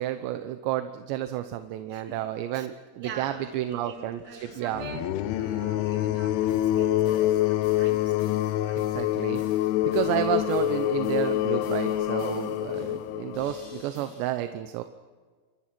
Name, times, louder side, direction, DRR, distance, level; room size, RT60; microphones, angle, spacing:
voice 1, 0.0-4.9 8.9-14.8, right 12 dB, 75° right, 8 dB, 3.0 m, -31 dB
voice 2, 1.9-2.7 3.0-8.1 8.5-8.8, right 4 dB, 25° right, 2 dB, 2.9 m, -44 dB
sound 1, 4.7-13.8, left 14 dB, 80° left, 3.2 m, -26 dB
sound 2, 6.4-14.3, left 2 dB, 35° left, 6.4 m, -51 dB
28.5 x 25.5 x 6.1 m, 1.5 s
omnidirectional pair, 5.5 m